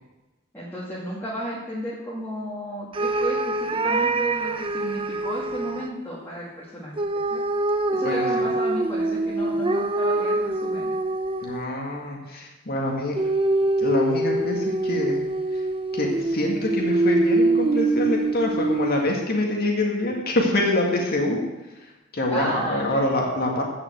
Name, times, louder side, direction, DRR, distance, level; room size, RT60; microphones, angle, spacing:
voice 1, 0.5-7.0 7.3-7.4 7.9-10.9 22.3-23.0, equal, 10° left, -8 dB, 2.4 m, -33 dB
sound 1, 2.9-5.9 7.0-11.7 13.2-19.3, right 2 dB, 25° right, 0.6 m, -24 dB
voice 2, 11.4-13.2 13.8-15.2 15.5-15.6 15.9-21.4 22.1-23.6, left 1 dB, 50° left, 0 dB, 2.0 m, -25 dB
14.0 x 5.8 x 7.8 m, 1.1 s
head